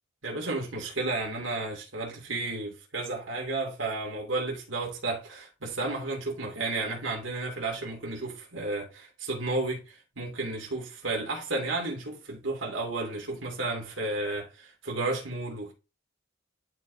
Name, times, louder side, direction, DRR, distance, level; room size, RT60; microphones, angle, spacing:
voice 1, 0.2-15.7, right 2 dB, 80° right, 2.5 m, -32 dB
11.0 x 5.2 x 2.7 m
head